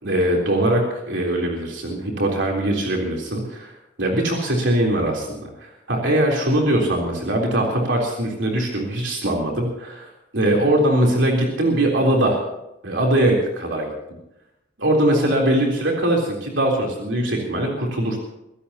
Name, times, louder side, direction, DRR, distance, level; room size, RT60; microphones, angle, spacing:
voice 1, 0.0-3.7 4.0-12.4 12.8-13.9 14.8-18.2, right 1 dB, 65° right, -1 dB, 3.7 m, -21 dB
24.5 x 16.0 x 2.9 m, 0.88 s
head